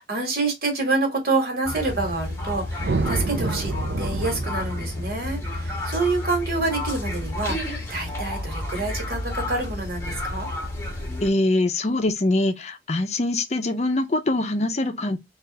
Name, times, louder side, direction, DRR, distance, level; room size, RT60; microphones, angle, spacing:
voice 1, 0.0-3.7 4.0-10.5, right 3 dB, 55° right, 1.4 m, -27 dB
sound 1, 1.6-11.3, left 1 dB, 15° left, 0.9 m, -31 dB
sound 2, 2.8-7.2, right 3 dB, 70° right, 0.5 m, -29 dB
voice 2, 11.2-15.2, left 2 dB, 40° left, 0.5 m, -23 dB
3.4 x 2.4 x 3.8 m
head